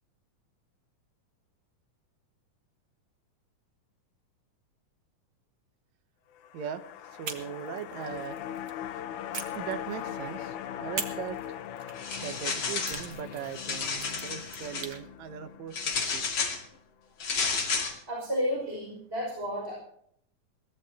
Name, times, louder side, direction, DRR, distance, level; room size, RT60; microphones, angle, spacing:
sound 1, 6.3-16.7 17.1-17.2, left 10 dB, 80° left, 2.2 m, -40 dB
voice 1, 7.1-8.4 8.9-9.0 9.5-11.4 12.2-16.3, right 9 dB, 70° right, 10 dB, 2.0 m, -39 dB
sound 2, 7.2-8.8 9.3-10.4 11.0-15.0, right 6 dB, 50° right, 1.7 m, -42 dB
sound 3, 12.0-13.1 13.4-14.9 15.7-16.6 17.2-17.9, left 5 dB, 45° left, 2.8 m, -31 dB
voice 2, 18.1-19.8, equal, 15° right, -2 dB, 5.8 m, -32 dB
22.5 x 18.0 x 2.8 m, 0.67 s
omnidirectional pair, 3.7 m